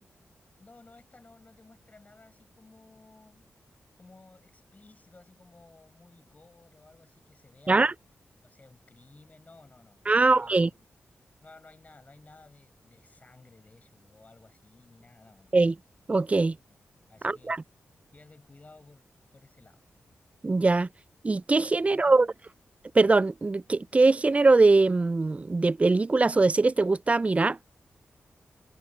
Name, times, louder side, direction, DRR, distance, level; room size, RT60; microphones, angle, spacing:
voice 1, 0.6-3.5 4.0-7.9 8.4-10.8 11.4-15.6 17.1-17.6 18.1-19.8 21.8-22.4, left 3 dB, 35° left, 5.2 m, -56 dB
voice 2, 10.1-10.7 15.5-15.7 16.1-16.6 17.2-17.6 20.4-20.9 21.2-22.3 22.9-27.6, right 3 dB, 30° right, 0.3 m, -22 dB
cardioid pair, 60°, 5 cm